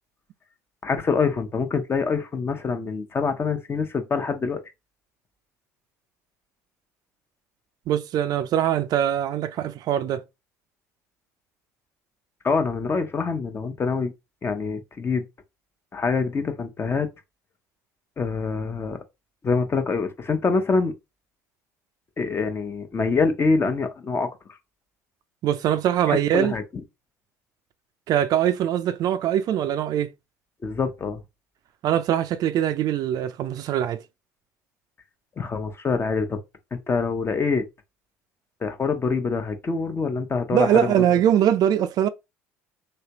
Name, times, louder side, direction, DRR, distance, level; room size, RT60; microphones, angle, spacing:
voice 1, 0.8-4.6 12.4-14.1 14.4-15.2 15.9-17.1 18.2-19.0 19.4-20.9 22.2-24.3 26.1-26.6 30.6-31.2 35.4-36.4 36.7-37.7 38.6-41.0, left 4 dB, 30° left, 0.8 m, -25 dB
voice 2, 7.9-10.2 25.4-26.5 28.1-30.1 31.8-34.0 40.5-42.1, right 10 dB, 55° right, 0.4 m, -22 dB
3.2 x 2.9 x 2.9 m
hypercardioid pair, 70°, 8 cm